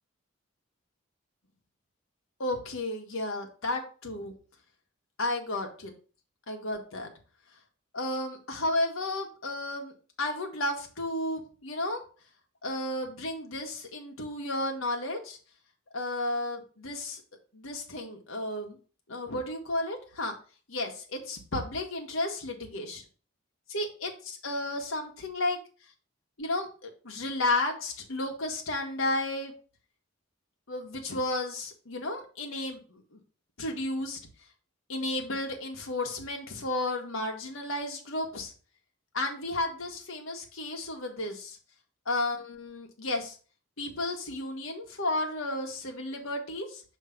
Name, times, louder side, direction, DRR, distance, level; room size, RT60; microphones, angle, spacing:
voice 1, 2.4-4.3 5.2-5.9 6.5-7.1 7.9-9.9 10.2-12.0 12.6-15.4 15.9-17.2 17.5-18.8 19.1-20.3 20.7-23.0 23.7-25.6 26.4-29.6 30.7-33.2 33.6-34.2 34.9-38.5 39.1-41.6 42.0-43.3 43.8-46.8, left 2 dB, 80° left, 2 dB, 1.5 m, -33 dB
6.4 x 3.2 x 5.7 m, 0.38 s
head